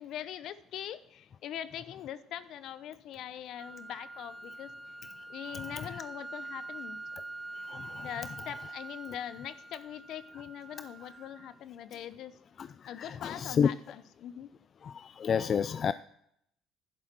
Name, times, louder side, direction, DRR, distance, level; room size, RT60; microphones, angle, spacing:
voice 1, 0.0-4.7 5.3-7.0 8.0-12.4 12.9-14.5, left 10 dB, 65° left, 15 dB, 0.8 m, -42 dB
sound 1, 3.6-11.6, right 2 dB, 15° right, 0.8 m, -45 dB
voice 2, 7.7-8.1 12.6-12.7 13.0-13.7 14.8-15.9, left 7 dB, 45° left, 15 dB, 0.4 m, -30 dB
11.5 x 10.5 x 4.6 m, 0.72 s
supercardioid pair, 90°, 0 cm